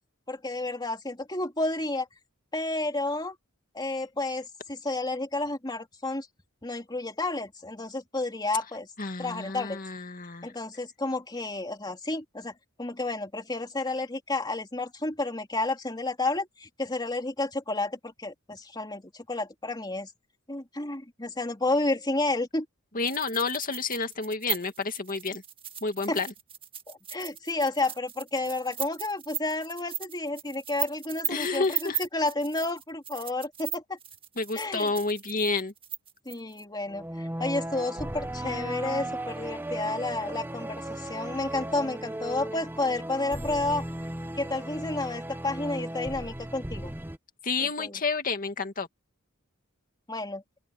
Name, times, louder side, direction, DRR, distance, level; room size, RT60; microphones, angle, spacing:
voice 1, 0.3-2.1 2.5-3.3 3.7-6.3 6.6-8.9 9.2-9.8 10.4-12.5 12.8-20.1 20.5-22.7 26.1-26.2 26.9-34.0 34.5-34.9 36.2-43.9 44.4-46.9 47.6-48.0 50.1-50.4, left 2 dB, 20° left, 2.9 m, -31 dB
voice 2, 9.0-10.5 22.9-25.4 25.8-26.3 31.3-32.0 34.4-35.7 47.4-48.9, left 4 dB, 40° left, 2.1 m, -30 dB
sound 1, 23.1-36.6, right 8 dB, 25° right, 2.0 m, -37 dB
sound 2, 36.9-47.2, right 1 dB, 10° right, 1.1 m, -36 dB
open air
head